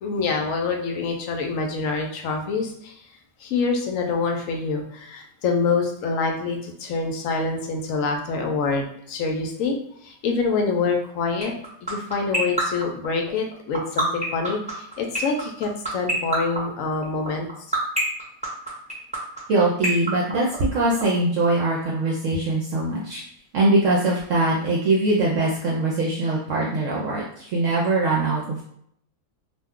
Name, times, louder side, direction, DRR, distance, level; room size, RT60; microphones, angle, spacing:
voice 1, 0.0-2.9 3.4-9.8 10.0-11.5 11.8-17.5, left 4 dB, 70° left, 3 dB, 0.9 m, -26 dB
sound 1, 11.4-21.0, right 2 dB, 5° right, 0.8 m, -24 dB
voice 2, 19.5-23.2 23.5-28.6, right 2 dB, 65° right, -4 dB, 0.9 m, -22 dB
2.6 x 2.2 x 3.5 m, 0.69 s
omnidirectional pair, 1.6 m